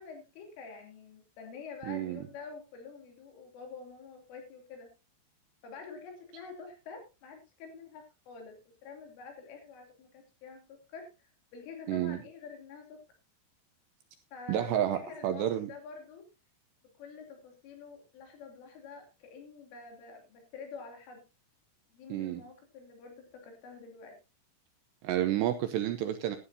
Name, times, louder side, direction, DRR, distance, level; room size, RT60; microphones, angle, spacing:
voice 1, 0.0-4.9 5.6-8.6 8.8-13.0 14.3-16.2 17.0-21.2 21.9-24.1, left 5 dB, 75° left, 3 dB, 5.4 m, -47 dB
voice 2, 1.9-2.2 11.9-12.2 14.5-15.7 22.1-22.4 25.0-26.4, right 11 dB, 80° right, 8 dB, 2.5 m, -30 dB
16.5 x 11.5 x 2.8 m, 0.27 s
omnidirectional pair, 5.7 m